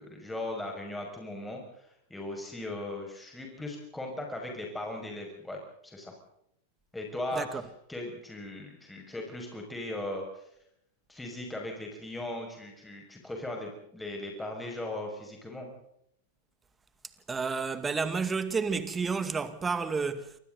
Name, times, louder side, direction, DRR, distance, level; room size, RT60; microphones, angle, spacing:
voice 1, 0.0-6.1 6.9-7.4 7.9-10.4 11.1-15.7, left 1 dB, 5° left, 6.0 m, -38 dB
voice 2, 17.3-20.4, right 5 dB, 15° right, 2.0 m, -30 dB
28.5 x 24.5 x 4.0 m
figure-of-eight pair, 95°, 0 cm